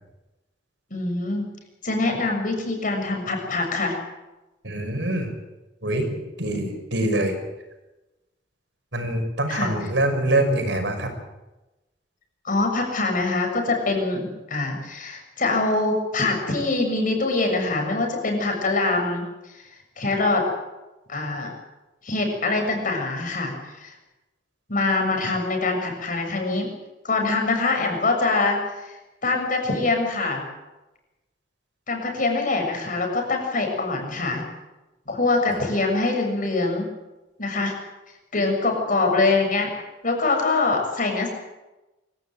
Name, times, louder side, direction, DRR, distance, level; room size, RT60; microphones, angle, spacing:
voice 1, 0.9-1.4 1.8-4.0 6.5-6.6 9.5-9.7 12.4-19.6 20.0-20.4 21.1-21.5 22.0-23.9 24.7-26.7 27.0-29.0 29.2-30.4 31.9-34.4 35.1-36.9 37.4-37.7 38.3-39.7 40.0-41.3, left 3 dB, 50° left, 3 dB, 6.7 m, -24 dB
voice 2, 4.6-5.3 5.8-6.1 6.4-7.3 8.9-11.1 35.5-35.6, right 1 dB, 80° right, 5 dB, 5.8 m, -24 dB
24.5 x 16.0 x 8.9 m, 1.1 s
head